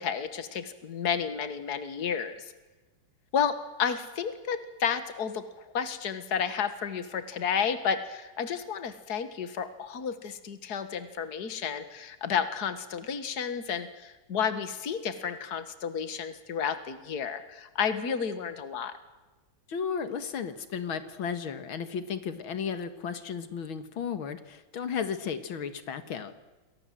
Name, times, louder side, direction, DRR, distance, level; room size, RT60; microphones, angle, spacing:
voice 1, 0.0-2.5 3.3-18.9, left 7 dB, 55° left, 10 dB, 2.1 m, -31 dB
voice 2, 19.7-26.3, left 7 dB, 90° left, 10 dB, 2.4 m, -34 dB
29.0 x 22.5 x 7.7 m, 1.2 s
omnidirectional pair, 2.1 m